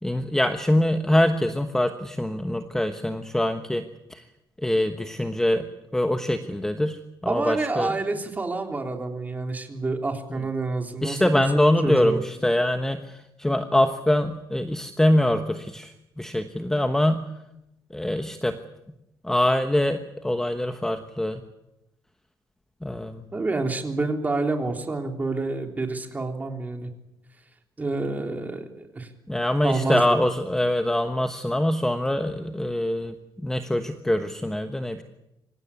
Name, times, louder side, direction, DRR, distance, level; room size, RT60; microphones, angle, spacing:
voice 1, 0.0-3.8 4.1-4.2 4.6-5.7 5.9-7.9 11.0-17.2 17.9-18.6 19.2-21.4 22.8-23.2 29.3-33.2 33.4-35.0, left 1 dB, 5° left, 7 dB, 1.2 m, -24 dB
voice 2, 7.3-12.2 23.3-26.9 27.8-29.1 29.6-30.0, right 3 dB, 20° right, 4 dB, 3.5 m, -28 dB
25.5 x 16.0 x 9.8 m, 0.89 s
cardioid pair, 135°, 8 cm